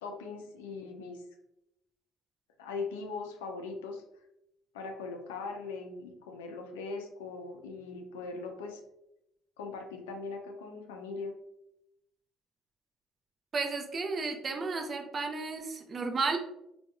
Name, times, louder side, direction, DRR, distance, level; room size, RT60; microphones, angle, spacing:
voice 1, 0.0-1.2 2.6-4.0 4.7-8.8 9.6-11.3, left 4 dB, 85° left, 3 dB, 0.3 m, -40 dB
voice 2, 13.5-16.4, right 4 dB, 40° right, 4 dB, 0.4 m, -33 dB
2.8 x 2.1 x 2.3 m, 0.84 s
hypercardioid pair, 60°, 0 cm